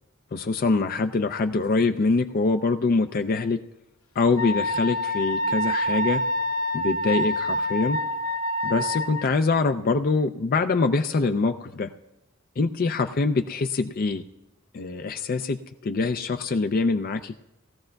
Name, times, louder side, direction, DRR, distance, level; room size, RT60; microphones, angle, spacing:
voice 1, 0.3-3.6 4.2-6.2 6.7-8.0 8.6-11.9 12.6-14.2 14.7-17.4, left 3 dB, 45° left, 8 dB, 0.4 m, -24 dB
Wind instrument woodwind instrument, 4.4-9.3, left 1 dB, 85° left, 1.1 m, -26 dB
19.5 x 14.0 x 2.3 m, 0.97 s
head